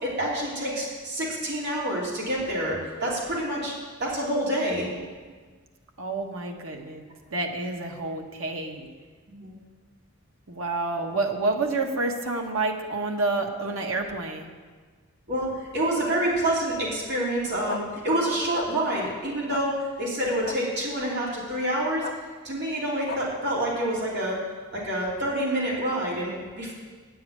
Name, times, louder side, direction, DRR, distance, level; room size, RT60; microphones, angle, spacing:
voice 1, 0.0-3.7 4.0-5.0 9.3-9.6 11.1-11.2 15.3-22.1 22.4-24.4 24.7-26.7, right 1 dB, 55° right, -5 dB, 3.1 m, -27 dB
voice 2, 6.0-7.0 7.3-8.9 10.5-14.5, right 3 dB, 80° right, 2 dB, 1.4 m, -29 dB
sound 1, 17.7-17.8 18.5-18.7 19.5-19.6 20.4-20.6 22.0-22.1 23.1-23.2, left 6 dB, 45° left, 0.4 m, -33 dB
9.4 x 7.8 x 8.6 m, 1.5 s
head